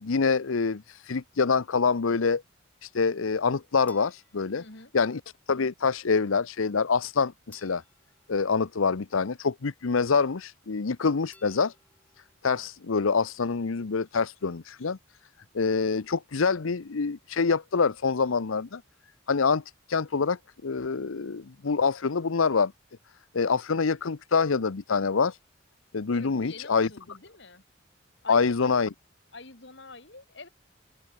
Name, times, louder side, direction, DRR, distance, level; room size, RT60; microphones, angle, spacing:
voice 1, 0.0-2.4 2.8-4.6 4.9-5.2 5.5-7.8 8.3-11.7 12.4-15.0 15.5-18.8 19.3-19.6 19.9-22.7 23.3-25.4 25.9-26.9 28.3-28.9, left 5 dB, 85° left, 0.7 m, -26 dB
sound 1, 3.9-5.4 7.5-9.4 11.3-12.4, left 2 dB, 10° left, 5.8 m, -61 dB
voice 2, 4.5-4.9 26.1-27.6 28.2-28.8 29.3-30.5, left 3 dB, 60° left, 3.2 m, -45 dB
head